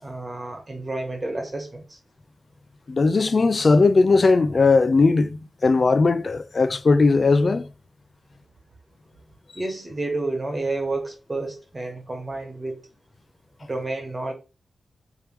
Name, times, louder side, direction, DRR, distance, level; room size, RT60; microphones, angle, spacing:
voice 1, 0.0-2.0 9.5-12.8 13.6-14.3, right 2 dB, 30° right, 1.3 m, -30 dB
voice 2, 2.9-7.7, left 3 dB, 45° left, 0.3 m, -18 dB
3.5 x 3.1 x 3.0 m
wide cardioid pair, 95°, 0 cm